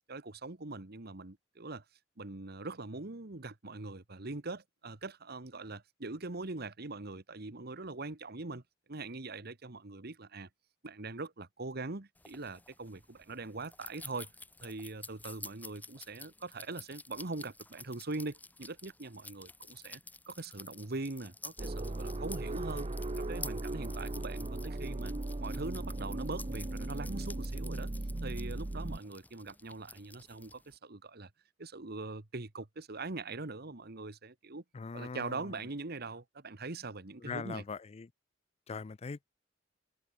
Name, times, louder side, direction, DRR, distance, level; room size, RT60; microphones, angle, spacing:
voice 1, 0.1-1.8 2.2-8.6 8.9-10.5 10.8-14.3 14.6-20.0 20.3-22.9 23.2-25.1 25.4-27.9 28.2-31.3 31.6-34.6 34.9-37.6, right 3 dB, 55° right, 1.5 m, -42 dB
sound 1, 12.2-30.8, left 3 dB, 10° left, 2.3 m, -51 dB
sound 2, 21.6-29.0, right 2 dB, 35° right, 0.8 m, -37 dB
voice 2, 34.7-35.6 37.2-38.1 38.7-39.4, left 5 dB, 35° left, 0.4 m, -41 dB
head